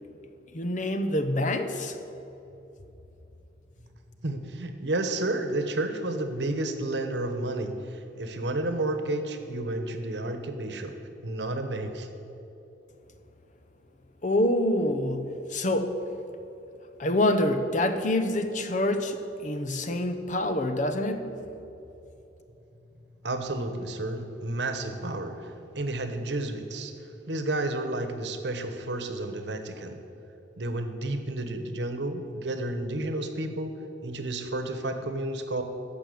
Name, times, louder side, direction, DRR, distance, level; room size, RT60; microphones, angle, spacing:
voice 1, 0.5-2.0 14.2-16.0 17.0-21.4, left 1 dB, 45° left, 8 dB, 0.9 m, -26 dB
voice 2, 4.2-11.0 11.2-12.1 23.2-26.9 27.3-30.0 30.6-33.7 34.0-35.6, right 2 dB, 75° right, 7 dB, 1.2 m, -31 dB
14.0 x 5.9 x 8.6 m, 3.0 s
head